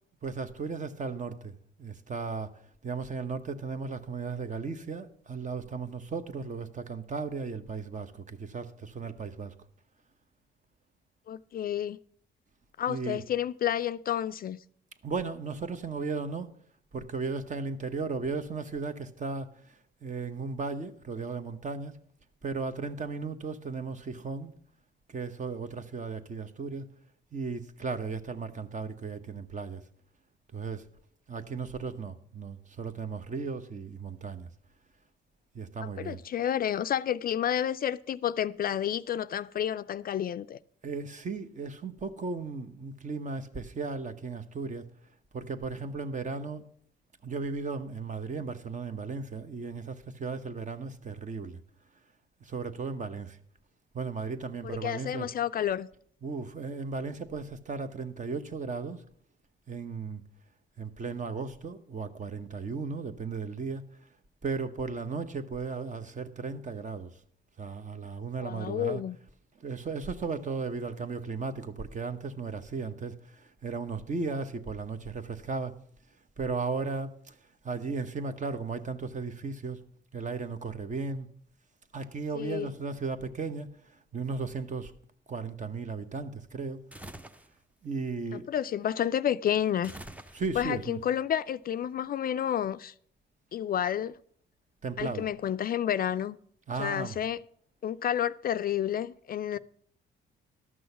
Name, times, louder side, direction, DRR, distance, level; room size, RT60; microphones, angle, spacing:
voice 1, 0.2-1.5 1.8-2.5 2.8-9.5 12.9-13.3 15.0-16.5 16.9-19.5 20.0-21.9 22.4-24.5 25.1-26.9 27.3-29.8 30.5-30.8 31.3-34.5 35.5-36.2 40.8-44.8 45.3-46.6 47.2-51.6 52.5-53.4 53.9-55.3 56.2-59.0 59.7-60.2 60.8-63.8 64.4-67.1 67.6-69.0 69.6-73.2 73.6-75.7 76.4-77.3 77.6-79.8 80.1-81.3 81.9-83.7 84.1-84.9 85.3-86.8 87.8-88.5 90.3-91.0 94.8-95.3 96.7-97.2, right 4 dB, 40° right, 1.0 m, -35 dB
voice 2, 11.3-12.0 12.8-14.6 35.8-40.6 54.6-55.9 68.4-69.2 82.3-82.7 88.3-90.0 90.6-92.9 93.5-94.1 95.0-96.4 96.8-97.4 97.8-99.6, left 10 dB, 50° left, 0.4 m, -30 dB
sound 1, 86.9-87.5 89.8-90.8, right 1 dB, 5° right, 0.6 m, -45 dB
12.5 x 6.3 x 7.1 m
cardioid pair, 90°, 20 cm